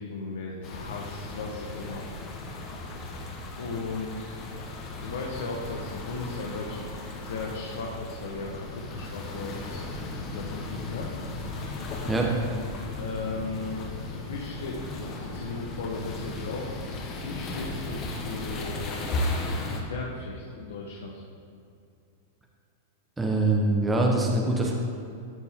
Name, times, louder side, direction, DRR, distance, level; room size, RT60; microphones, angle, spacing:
voice 1, 0.0-2.0 3.6-4.4 5.0-9.8 10.3-11.1 12.9-16.7 17.2-19.0 19.7-21.2, left 3 dB, 85° left, -2 dB, 1.0 m, -36 dB
sound 1, 0.6-19.8, left 2 dB, 30° left, 1.0 m, -36 dB
voice 2, 23.2-24.7, right 2 dB, 10° right, 0 dB, 0.8 m, -23 dB
12.0 x 4.6 x 3.5 m, 2.5 s
supercardioid pair, 145°, 0 cm